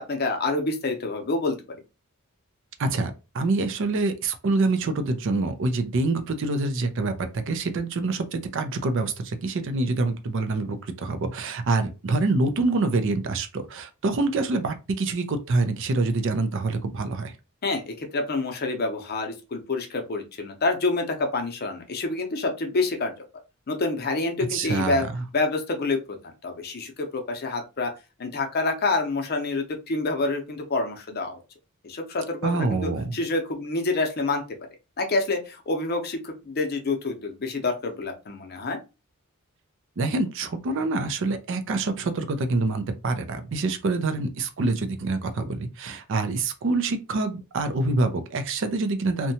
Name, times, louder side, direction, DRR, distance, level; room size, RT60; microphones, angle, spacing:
voice 1, 0.0-1.8 17.6-23.1 23.7-25.1 25.3-26.2 26.4-27.9 28.2-31.4 31.8-34.4 35.0-38.8, left 3 dB, 45° left, 0.6 m, -27 dB
voice 2, 2.8-17.3 24.5-25.2 32.4-33.1 40.0-49.3, right 3 dB, 60° right, 0.4 m, -26 dB
2.7 x 2.2 x 2.7 m
head